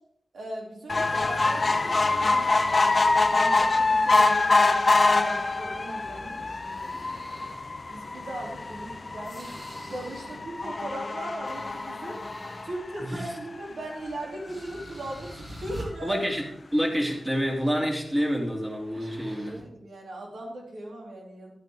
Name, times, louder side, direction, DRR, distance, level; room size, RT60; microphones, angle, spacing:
voice 1, 0.3-2.9 3.2-7.0 7.9-12.2 12.6-16.2 19.0-21.5, right 1 dB, 85° right, -2 dB, 3.1 m, -39 dB
sound 1, 0.9-13.5 14.1-14.2 14.5-14.6 14.8-14.9, left 3 dB, 40° left, 0.7 m, -25 dB
sound 2, 6.5-7.8 8.3-10.6 11.0-12.9 14.1-14.2 14.5-15.9 18.1-18.4 18.7-19.6, right 1 dB, 50° right, 3.3 m, -46 dB
voice 2, 16.0-16.4 16.7-19.6, equal, 15° right, -1 dB, 2.7 m, -27 dB
12.0 x 8.8 x 3.7 m, 0.75 s
wide cardioid pair, 95°, 0 cm